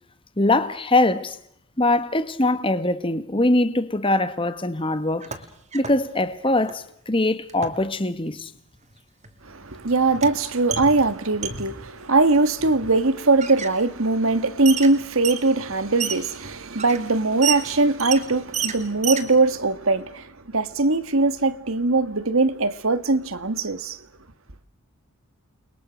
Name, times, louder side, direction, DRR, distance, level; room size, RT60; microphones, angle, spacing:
voice 1, 0.4-1.4 1.8-5.3 5.7-8.5, left 2 dB, 25° left, 1.5 m, -22 dB
sound 1, 5.1-6.0 6.3-6.8 7.5-7.8 8.9-9.0 9.2-11.9 12.6-13.0 13.4-13.7 14.3-14.4 14.6-19.3, right 7 dB, 30° right, 2.6 m, -31 dB
voice 2, 9.4-24.0, right 3 dB, 65° right, 1.6 m, -21 dB
30.0 x 22.0 x 6.4 m
head